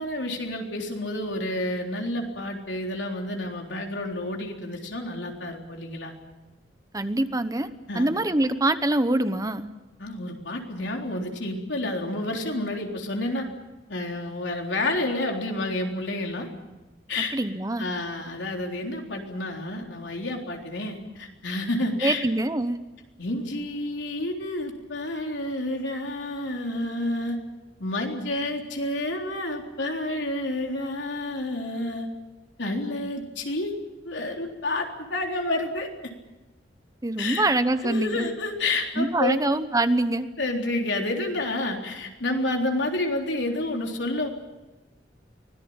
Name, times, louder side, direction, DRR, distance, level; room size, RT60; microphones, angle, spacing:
voice 1, 0.0-6.1 7.9-8.1 10.0-13.5 13.9-16.5 17.1-17.3 17.8-22.2 23.2-27.4 27.8-32.1 32.6-33.7 34.0-35.9 37.2-37.5 37.8-39.4 40.4-44.3, left 2 dB, 80° left, 2 dB, 3.8 m, -29 dB
voice 2, 6.9-7.7 7.9-9.7 17.3-17.9 22.0-22.8 37.0-38.3 39.0-40.3, right 2 dB, 20° right, 11 dB, 1.0 m, -24 dB
24.5 x 18.0 x 8.8 m, 1.1 s
head